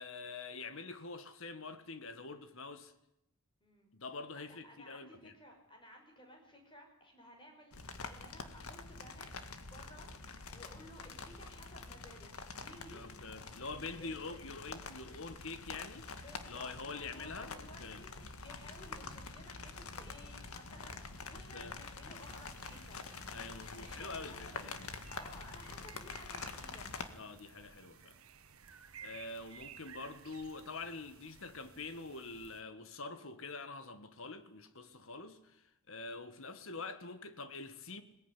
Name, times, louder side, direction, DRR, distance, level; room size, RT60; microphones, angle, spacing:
voice 1, 0.0-2.9 3.9-5.3 12.9-16.1 16.4-18.0 21.3-21.8 23.3-24.9 27.1-28.2 29.0-38.0, left 3 dB, 65° left, 1.7 m, -46 dB
voice 2, 3.6-3.9 4.6-12.3 12.6-13.0 13.7-14.4 16.2-23.0 23.8-24.7 25.1-26.9, equal, 25° left, 6.0 m, -56 dB
sound 1, 7.7-27.1, left 4 dB, 90° left, 1.9 m, -47 dB
sound 2, 22.2-32.6, right 7 dB, 75° right, 1.5 m, -57 dB
20.5 x 18.5 x 10.0 m
head